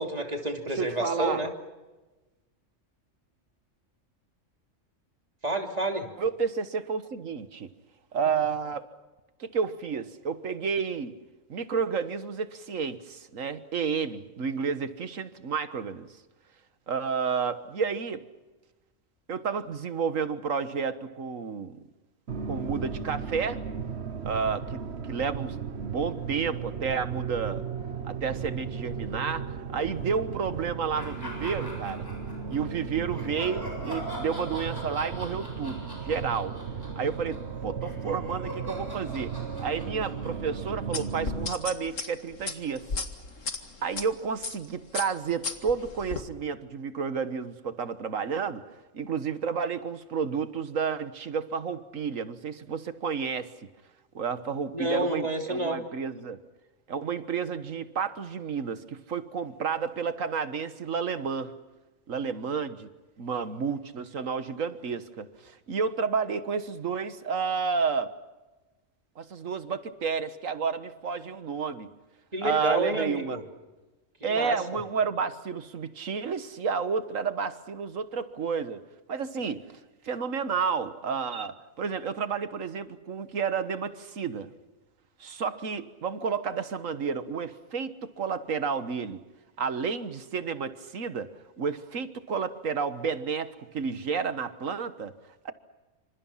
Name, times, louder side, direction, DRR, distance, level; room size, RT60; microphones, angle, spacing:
voice 1, 0.0-1.5 5.4-6.1 54.7-55.8 72.3-73.4 74.3-74.6, right 1 dB, 30° right, 3 dB, 3.1 m, -29 dB
voice 2, 0.7-1.5 6.2-7.7 8.1-8.9 9.4-11.2 11.5-16.1 16.9-18.2 19.3-21.8 22.5-23.6 24.2-27.6 28.0-32.1 32.5-36.5 37.0-42.9 43.8-48.6 48.9-53.5 54.1-56.4 56.9-61.5 62.1-62.9 63.2-68.1 69.2-71.9 72.4-73.4 74.2-78.8 79.1-79.6 80.0-84.5 85.2-89.2 89.6-91.3 91.6-95.1 95.5-95.6, right 6 dB, 85° right, 11 dB, 1.7 m, -31 dB
sound 1, 22.3-41.5, right 6 dB, 55° right, 1.5 m, -36 dB
sound 2, 30.9-32.6 33.1-41.4, equal, 15° left, 7.5 m, -42 dB
sound 3, 40.9-44.0 44.4-44.7 44.9-46.2, left 4 dB, 75° left, 2.3 m, -34 dB
27.5 x 26.0 x 5.8 m, 1.2 s
omnidirectional pair, 1.3 m